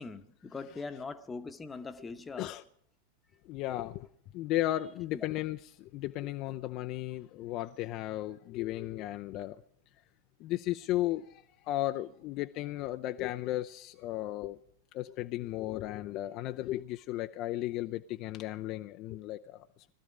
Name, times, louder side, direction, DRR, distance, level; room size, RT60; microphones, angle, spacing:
voice 1, 0.0-2.5 5.1-5.3 6.2-6.3, left 4 dB, 15° left, 1.0 m, -41 dB
voice 2, 3.4-4.1 4.3-9.6 10.4-14.6 14.9-19.7, left 15 dB, 40° left, 0.5 m, -35 dB
19.5 x 13.0 x 5.1 m
figure-of-eight pair, 90°, 0 cm